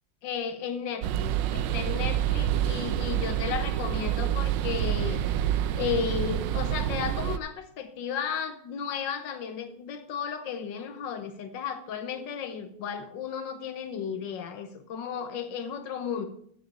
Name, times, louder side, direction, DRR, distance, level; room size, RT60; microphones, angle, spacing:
voice 1, 0.2-5.4 5.8-16.3, left 7 dB, 75° left, 9 dB, 1.8 m, -34 dB
sound 1, 1.0-7.4, right 11 dB, 80° right, 1.3 m, -28 dB
9.3 x 7.6 x 6.7 m, 0.65 s
omnidirectional pair, 2.0 m